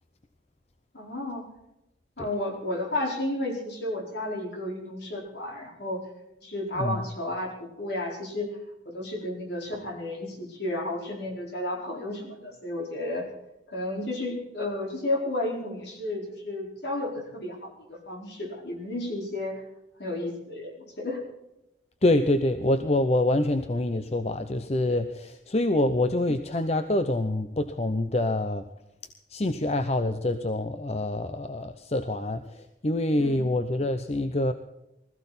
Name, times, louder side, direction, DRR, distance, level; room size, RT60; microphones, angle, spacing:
voice 1, 0.9-1.4 2.2-6.0 6.4-8.5 8.8-13.3 13.7-19.6 20.0-21.2 33.2-33.5, left 1 dB, 65° left, 0 dB, 4.7 m, -32 dB
voice 2, 22.0-28.7 29.3-34.5, left 1 dB, 35° left, 9 dB, 0.7 m, -26 dB
20.0 x 14.5 x 4.2 m, 0.91 s
head